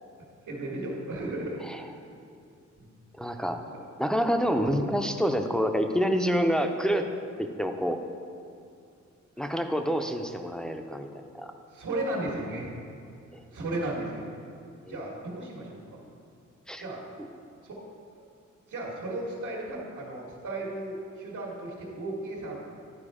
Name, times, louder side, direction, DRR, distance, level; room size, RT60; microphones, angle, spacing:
voice 1, 0.5-1.6 2.8-2.9 3.6-3.8 11.7-12.7 13.5-14.3 14.9-16.0 16.8-17.0 17.6-17.8 18.7-22.6, right 2 dB, 90° right, -5 dB, 1.7 m, -35 dB
voice 2, 3.2-3.6 4.0-7.0 7.4-8.0 9.4-11.1 11.3-11.5 13.3-13.4 14.9-15.0 16.7-16.8 17.2-17.3, equal, ahead, 5 dB, 0.4 m, -27 dB
11.0 x 4.6 x 4.9 m, 2.4 s
wide cardioid pair, 125°, 30 cm